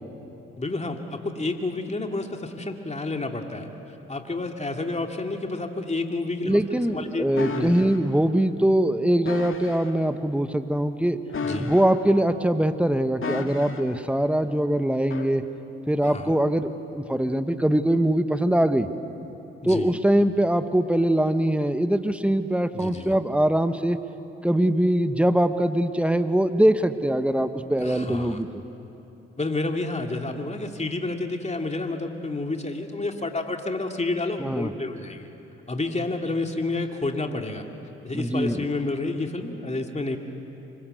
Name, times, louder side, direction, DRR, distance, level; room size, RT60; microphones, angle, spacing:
voice 1, 0.6-3.7 4.1-7.3 7.5-7.8 11.4-11.7 16.0-16.4 19.6-19.9 22.7-23.1 27.8-28.4 29.4-35.3 35.7-37.7 38.0-40.2, left 2 dB, 20° left, 4 dB, 2.6 m, -30 dB
voice 2, 6.4-11.2 11.6-15.5 15.9-18.9 19.6-24.0 24.4-28.5 34.4-34.7 38.1-38.7, right 1 dB, 5° right, 10 dB, 1.4 m, -22 dB
sound 1, 7.4-8.0 9.2-9.9 11.3-12.2 13.2-14.0 15.1-15.3, left 4 dB, 45° left, 2.0 m, -33 dB
25.5 x 22.0 x 8.0 m, 2.9 s
hypercardioid pair, 45°, 30 cm